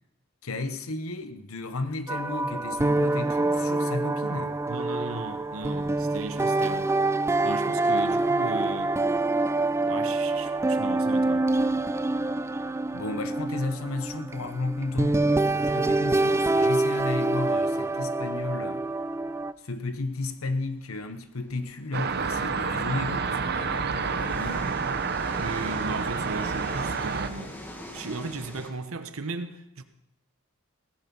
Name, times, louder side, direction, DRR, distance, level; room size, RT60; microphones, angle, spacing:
voice 1, 0.4-4.6 12.9-15.2 15.7-18.8 19.6-24.7, left 3 dB, 85° left, 1.0 m, -33 dB
sound 1, 2.1-19.5, right 2 dB, 15° right, 0.4 m, -26 dB
voice 2, 4.7-6.9 7.4-9.0 9.8-11.5 25.3-27.6 27.9-29.8, right 3 dB, 80° right, 1.1 m, -36 dB
sound 2, 14.4-17.0 17.3-17.4 17.7-17.9 18.8-19.0 19.2-19.3 20.0-28.7, left 1 dB, 10° left, 1.5 m, -44 dB
sound 3, 21.9-27.3, right 5 dB, 50° right, 0.8 m, -29 dB
16.5 x 10.5 x 5.5 m
head